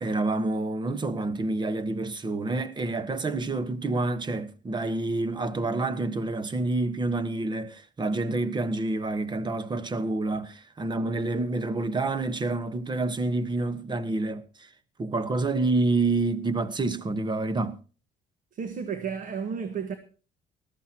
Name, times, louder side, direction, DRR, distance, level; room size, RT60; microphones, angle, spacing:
voice 1, 0.0-14.7 15.0-17.8, right 2 dB, 25° right, 1.4 m, -28 dB
voice 2, 18.5-20.0, right 6 dB, 50° right, 1.6 m, -32 dB
20.0 x 14.0 x 3.0 m
cardioid pair, 110°, 17 cm